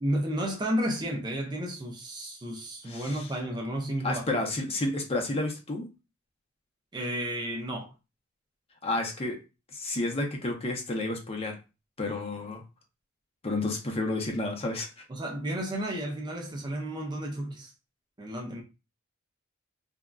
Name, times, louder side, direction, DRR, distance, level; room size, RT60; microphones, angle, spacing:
voice 1, 0.0-4.4 6.9-7.9 15.1-17.7 18.2-18.6, right 1 dB, 20° right, 0.4 m, -32 dB
voice 2, 2.8-3.3 4.0-5.9 8.8-9.4 9.7-11.6 12.0-12.6 13.4-15.0, left 2 dB, 30° left, 0.6 m, -31 dB
3.5 x 2.1 x 2.2 m
head